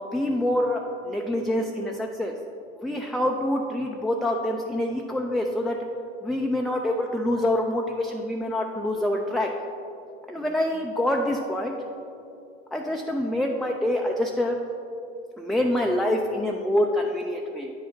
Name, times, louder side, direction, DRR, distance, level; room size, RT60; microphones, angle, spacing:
voice 1, 0.0-2.3 2.8-5.8 6.2-9.5 10.3-11.7 12.7-14.6 15.4-17.7, left 1 dB, ahead, 1 dB, 0.4 m, -26 dB
8.8 x 5.1 x 3.8 m, 2.7 s
hypercardioid pair, 85°, 31 cm